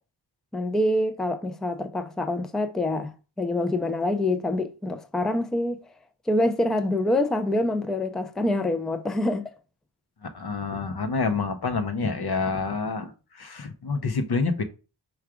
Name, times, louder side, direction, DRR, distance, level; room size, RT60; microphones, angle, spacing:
voice 1, 0.5-5.8 6.3-9.5, left 1 dB, ahead, 0.3 m, -26 dB
voice 2, 10.2-14.6, left 4 dB, 55° left, 0.7 m, -28 dB
4.7 x 2.3 x 4.8 m
wide cardioid pair, 75°, 47 cm